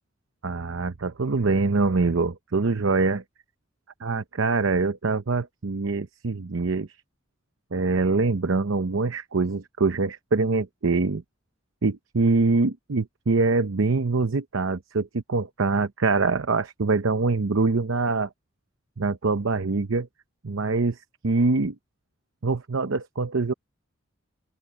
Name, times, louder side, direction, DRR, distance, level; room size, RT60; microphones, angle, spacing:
voice 1, 0.4-3.2 4.0-6.9 7.7-11.2 11.8-18.3 19.0-20.1 20.4-21.0 21.2-21.7 22.4-23.5, right 3 dB, 80° right, 0.8 m, -24 dB
open air
head